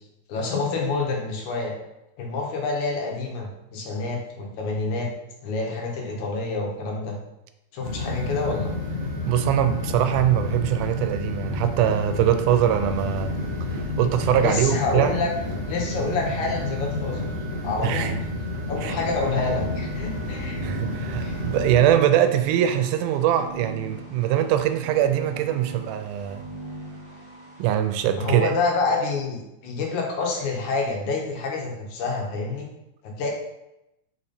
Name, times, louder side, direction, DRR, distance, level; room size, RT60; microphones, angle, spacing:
voice 1, 0.3-1.7 2.2-5.1 5.4-7.2 7.7-8.7 14.3-15.3 15.7-17.3 17.6-18.1 18.7-20.6 21.2-21.4 28.2-32.7 33.0-33.3, left 3 dB, 70° left, 0 dB, 2.5 m, -27 dB
sound 1, 7.8-21.9, left 2 dB, 50° left, 0.9 m, -30 dB
voice 2, 9.3-13.3 13.7-15.1 17.8-18.2 18.8-18.9 20.6-26.4 27.6-28.5, right 11 dB, 85° right, 9 dB, 2.0 m, -22 dB
sound 2, 18.7-27.8, right 1 dB, 25° right, 1.5 m, -40 dB
5.1 x 4.4 x 4.3 m, 0.89 s
omnidirectional pair, 3.6 m